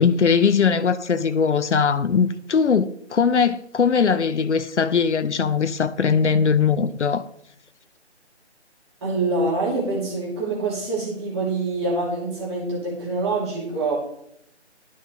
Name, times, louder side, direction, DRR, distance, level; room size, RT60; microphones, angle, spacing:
voice 1, 0.0-7.2, left 6 dB, 80° left, 0.6 m, -20 dB
voice 2, 9.0-13.9, right 3 dB, 25° right, 2.9 m, -25 dB
12.0 x 5.5 x 3.2 m
figure-of-eight pair, 160°, 35 cm